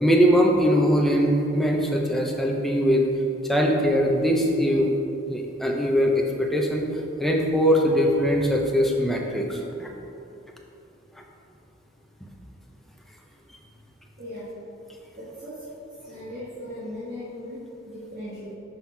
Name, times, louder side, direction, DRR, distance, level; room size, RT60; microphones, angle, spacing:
voice 1, 0.0-3.1 3.4-4.9 5.2-6.8 7.2-9.9, equal, ahead, 0 dB, 0.7 m, -21 dB
voice 2, 14.2-14.5 15.2-15.7 16.0-18.6, left 1 dB, 40° right, -10 dB, 1.6 m, -38 dB
6.3 x 5.6 x 4.6 m, 2.8 s
head